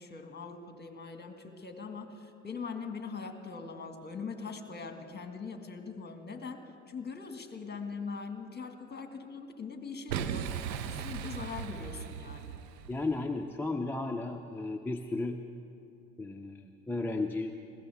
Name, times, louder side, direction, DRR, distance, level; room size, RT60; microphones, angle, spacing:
voice 1, 0.0-12.6, left 5 dB, 20° left, 5 dB, 1.8 m, -42 dB
Boom, 10.1-13.1, right 8 dB, 85° right, 0.8 m, -37 dB
voice 2, 12.9-15.4 16.2-17.5, left 2 dB, 5° left, 2 dB, 0.5 m, -34 dB
20.5 x 16.5 x 3.5 m, 2.8 s
hypercardioid pair, 70°, 50 cm